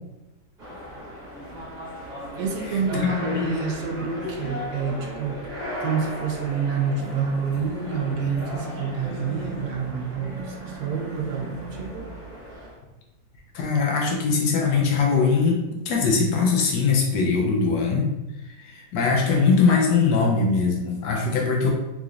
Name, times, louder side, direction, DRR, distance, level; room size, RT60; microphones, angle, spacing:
sound 1, 0.6-12.8, left 1 dB, 35° right, 0.8 m, -37 dB
voice 1, 2.3-12.1, right 5 dB, 75° right, 1 dB, 1.2 m, -28 dB
voice 2, 2.9-3.6 13.5-15.6 15.9-18.1 18.6-21.7, left 4 dB, 80° left, 0 dB, 1.3 m, -21 dB
3.7 x 3.1 x 2.4 m, 1.0 s
omnidirectional pair, 1.9 m